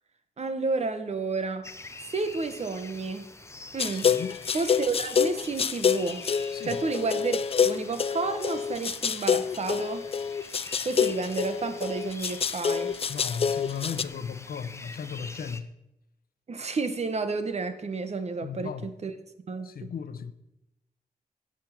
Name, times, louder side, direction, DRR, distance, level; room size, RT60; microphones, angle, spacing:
voice 1, 0.4-1.6 2.1-3.3 3.7-4.1 4.5-6.2 6.6-10.0 10.8-12.9 16.5-19.1 19.5-19.7, right 4 dB, 45° right, 1.1 m, -31 dB
sound 1, 1.6-15.6, left 3 dB, 20° left, 0.7 m, -46 dB
sound 2, 3.8-14.0, left 7 dB, 40° left, 0.4 m, -27 dB
voice 2, 3.9-4.4 6.5-6.8 13.1-15.7 18.4-18.9 19.6-20.3, left 7 dB, 90° left, 0.8 m, -36 dB
16.5 x 6.3 x 5.9 m
wide cardioid pair, 160°, 15 cm